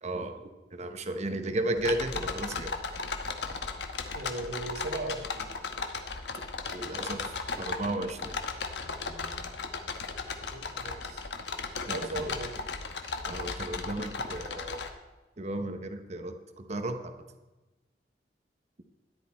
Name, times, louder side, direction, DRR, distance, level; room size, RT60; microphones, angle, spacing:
voice 1, 0.0-2.7 6.7-8.4 11.9-12.2 13.3-14.9 15.4-17.1, right 1 dB, 40° right, 7 dB, 0.9 m, -34 dB
sound 1, 1.8-14.9, left 4 dB, 75° left, 1.1 m, -36 dB
voice 2, 4.1-5.5 10.5-11.3 11.8-12.7, right 2 dB, 70° right, 5 dB, 1.3 m, -38 dB
13.5 x 10.5 x 4.3 m, 1.1 s
head